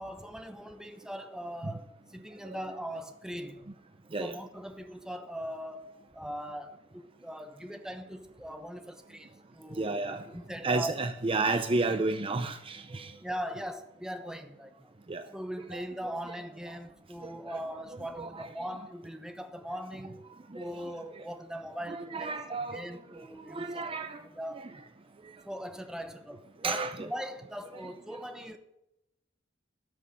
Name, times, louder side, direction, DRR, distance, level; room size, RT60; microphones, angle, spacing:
voice 1, 0.0-3.7 4.2-10.0 10.3-10.9 13.2-14.9 15.3-20.3 20.5-22.3 22.7-23.8 24.3-24.6 25.4-28.6, equal, 5° right, 0.9 m, -40 dB
voice 2, 9.7-10.2 10.6-13.1 15.1-15.2 15.7-15.9 17.5-17.6 18.1-18.5 20.5-21.2 21.9-24.2 24.5-24.7 26.6-27.1, right 3 dB, 25° right, 0.6 m, -32 dB
12.5 x 6.4 x 9.2 m
head